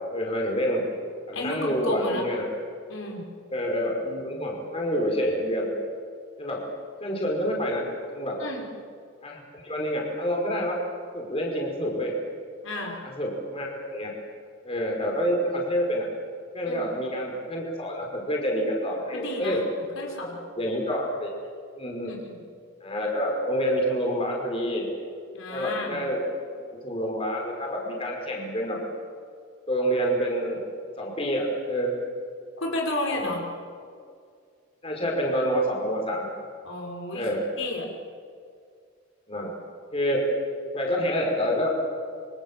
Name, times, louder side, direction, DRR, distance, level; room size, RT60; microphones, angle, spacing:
voice 1, 0.1-0.9 1.3-2.4 3.5-5.7 6.4-6.6 7.0-7.8 8.1-8.4 9.2-10.8 11.1-12.1 13.0-14.1 14.6-16.1 16.5-19.6 20.5-21.3 21.8-22.2 22.8-24.9 25.5-26.2 26.8-28.8 29.7-30.6 31.0-32.0 33.1-33.4 34.8-36.3 37.1-37.4 39.3-39.5 39.9-40.3 40.7-41.7, equal, 25° left, -1 dB, 5.2 m, -27 dB
voice 2, 1.3-2.3 2.9-3.2 8.4-8.6 12.6-13.0 16.6-16.9 19.1-19.6 20.0-20.4 22.1-22.4 25.3-26.0 32.6-33.4 36.6-37.3 37.6-37.9, left 1 dB, 70° left, 0 dB, 5.5 m, -32 dB
28.0 x 25.5 x 7.5 m, 2.2 s
head